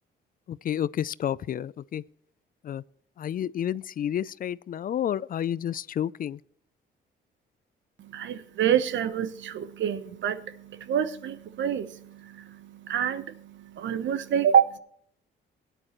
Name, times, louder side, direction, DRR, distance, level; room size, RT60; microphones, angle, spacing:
voice 1, 0.5-2.0 2.6-2.8 3.2-6.4, left 10 dB, 45° left, 0.4 m, -30 dB
voice 2, 8.0-14.8, right 9 dB, 70° right, 0.9 m, -27 dB
17.0 x 10.0 x 3.0 m
cardioid pair, 90°, 20 cm